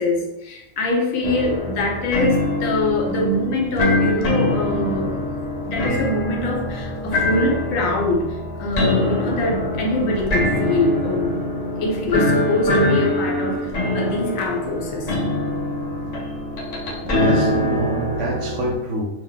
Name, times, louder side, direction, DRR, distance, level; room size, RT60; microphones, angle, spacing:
voice 1, 0.0-5.1 5.6-8.3 8.6-11.4 11.8-15.1, left 2 dB, 80° left, 1 dB, 1.0 m, -23 dB
sound 1, 1.2-18.8, left 1 dB, 60° left, 0.4 m, -23 dB
voice 2, 17.0-19.1, right 1 dB, 70° right, 0 dB, 0.9 m, -26 dB
2.6 x 2.1 x 3.7 m, 0.94 s
omnidirectional pair, 1.4 m